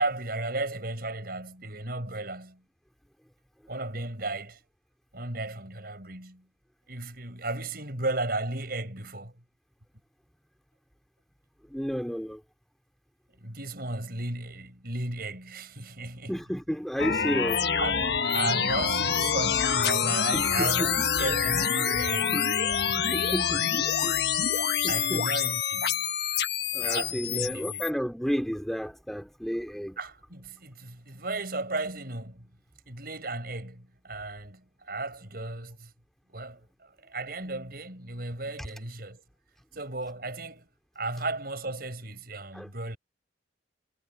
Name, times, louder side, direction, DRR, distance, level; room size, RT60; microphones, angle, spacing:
voice 1, 0.0-2.6 3.7-4.6 5.1-6.5 6.9-9.3 13.4-16.3 17.8-22.4 24.7-26.1 26.8-27.8 30.0-32.5 32.9-35.9 36.3-39.2 39.7-40.7 40.9-43.0, right 2 dB, 55° right, 6.6 m, -35 dB
voice 2, 11.7-12.4 16.3-17.7 20.3-20.9 22.3-22.4 23.1-24.3 24.8-25.3 26.7-30.0 42.5-42.7, equal, ahead, 3.2 m, -32 dB
sound 1, 17.0-27.9, left 7 dB, 60° left, 1.4 m, -26 dB
head